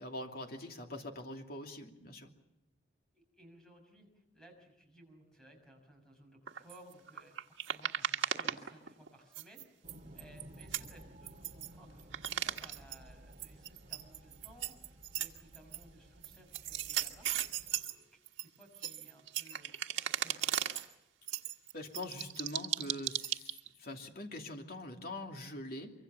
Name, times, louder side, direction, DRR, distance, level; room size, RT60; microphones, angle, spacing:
voice 1, 0.0-2.3 21.7-25.9, left 1 dB, 50° left, 3 dB, 2.8 m, -43 dB
voice 2, 3.1-9.8 10.1-17.3 17.7-20.5, right 1 dB, 5° left, 3 dB, 6.3 m, -60 dB
sound 1, 6.5-9.1 9.3-11.7 12.0-13.0 13.3-15.8 16.2-17.9 18.3-20.9 21.3-23.7, right 10 dB, 90° right, 1.5 m, -37 dB
sound 2, 9.8-17.8, right 1 dB, 35° right, 2.4 m, -56 dB
24.5 x 24.5 x 7.0 m, 0.89 s
head